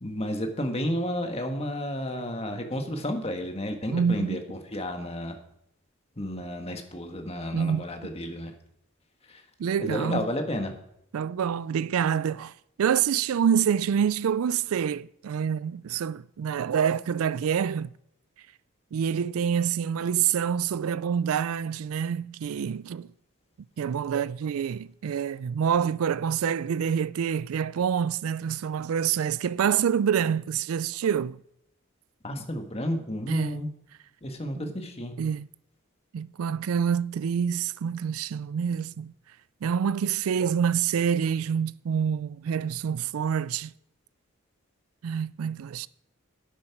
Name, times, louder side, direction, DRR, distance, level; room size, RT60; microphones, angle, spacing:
voice 1, 0.0-5.4 6.2-8.5 9.3-9.4 9.8-10.8 32.2-33.7 34.2-35.1, left 1 dB, 30° left, 1.5 m, -32 dB
voice 2, 3.9-4.4 7.5-7.8 9.6-10.2 11.1-12.5 12.8-17.9 18.9-23.1 23.8-31.4 33.3-33.7 34.6-34.7 35.2-35.5 36.1-39.1 39.6-43.7 45.0-45.9, right 7 dB, 85° right, 0.4 m, -27 dB
10.5 x 8.9 x 5.9 m
head